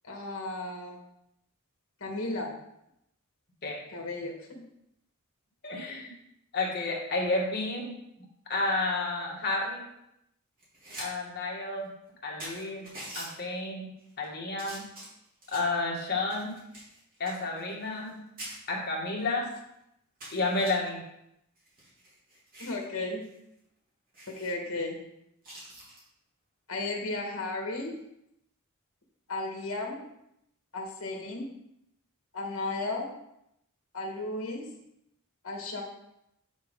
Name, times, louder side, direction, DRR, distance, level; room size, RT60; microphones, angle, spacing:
voice 1, 0.0-1.0 2.0-2.5 3.9-4.6 22.6-23.2 24.3-24.9 26.7-28.0 29.3-30.0 30.7-31.5 32.3-33.1 33.9-34.6 35.4-35.8, left 2 dB, 65° left, 1 dB, 1.6 m, -34 dB
voice 2, 5.6-6.1 6.5-7.9 8.5-9.8 11.0-11.9 12.2-12.9 13.2-13.9 14.2-14.9 15.5-16.6 17.2-18.3 18.7-19.5 20.3-21.0, left 2 dB, 50° left, -2 dB, 1.9 m, -31 dB
sound 1, 10.6-11.1 11.4-11.5 12.1-12.2 12.4-13.3 14.0-14.2 14.6-15.7 16.3-18.1 18.4-18.6 19.2-19.3 19.6-19.7 20.2-20.7 21.6-22.8 23.2-23.4 23.6-23.7 24.1-24.5 25.4-26.0 27.7-28.0, right 1 dB, 40° right, 3.2 m, -44 dB
8.7 x 6.3 x 3.7 m, 0.81 s
head